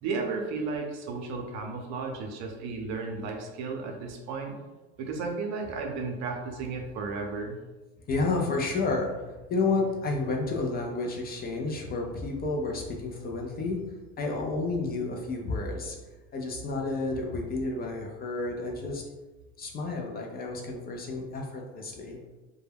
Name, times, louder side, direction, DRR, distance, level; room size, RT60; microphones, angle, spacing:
voice 1, 0.0-4.6 5.0-7.6, right 4 dB, 55° right, 2 dB, 0.6 m, -34 dB
voice 2, 8.1-16.0 16.3-19.0 19.6-22.2, left 3 dB, 30° left, 0 dB, 0.4 m, -31 dB
2.1 x 2.1 x 3.3 m, 1.2 s
supercardioid pair, 105°, 32 cm